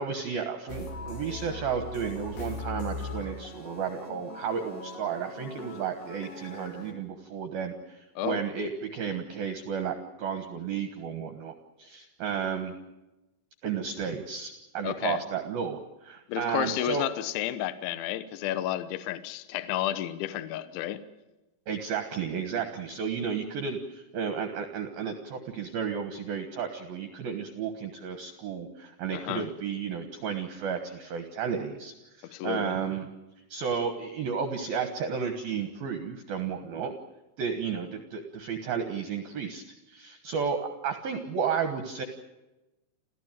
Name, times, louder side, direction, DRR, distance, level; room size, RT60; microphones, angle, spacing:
voice 1, 0.0-12.7 13.6-17.0 21.7-33.1 33.5-36.9 37.4-42.1, right 6 dB, 65° right, 7 dB, 2.6 m, -33 dB
sound 1, 0.7-6.9, left 2 dB, 55° left, 5.5 m, -40 dB
voice 2, 14.8-15.2 16.3-21.0 29.1-29.5 32.2-32.8, left 13 dB, 75° left, 13 dB, 3.3 m, -31 dB
29.0 x 15.0 x 9.1 m, 1.0 s
omnidirectional pair, 5.7 m